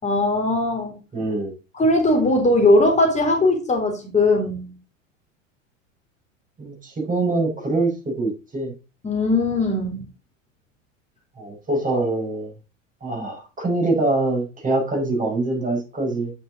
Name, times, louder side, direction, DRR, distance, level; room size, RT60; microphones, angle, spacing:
voice 1, 0.0-1.0 1.7-4.8 9.0-10.1, left 2 dB, 20° left, 3.5 m, -19 dB
voice 2, 1.1-1.5 6.6-8.7 11.4-12.5 13.0-16.3, right 2 dB, 20° right, 5.6 m, -24 dB
9.2 x 6.6 x 3.8 m
figure-of-eight pair, 80°, 38 cm